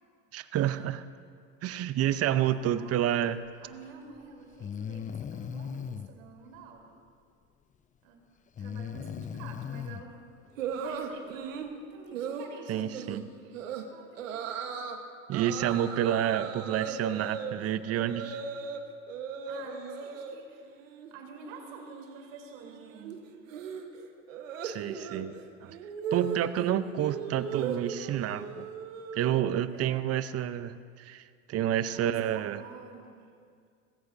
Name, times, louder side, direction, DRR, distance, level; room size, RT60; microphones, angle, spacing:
voice 1, 0.3-1.1 1.6-3.4 12.7-13.2 15.3-18.4 24.6-25.4 25.6-25.8 26.1-28.7 29.1-31.2 31.5-32.6, right 11 dB, 40° right, 14 dB, 0.7 m, -29 dB
voice 2, 2.2-3.3 3.6-7.0 8.0-8.2 8.6-10.2 10.7-13.1 13.4-14.9 19.5-23.4 26.5-26.8 29.7-30.2 31.9-33.3, right 5 dB, 70° right, 2 dB, 2.7 m, -49 dB
Breathing, 3.7-3.8 4.6-6.1 8.6-10.0, left 7 dB, 20° left, 0.5 m, -37 dB
sound 1, 10.6-11.7 12.1-12.5 12.9-13.2 13.5-13.8 14.2-15.0 15.3-18.8 19.1-20.4 20.7-21.1 21.4-29.5, right 6 dB, 85° right, 1.3 m, -38 dB
19.5 x 16.0 x 2.6 m, 2.2 s
hypercardioid pair, 85°, 38 cm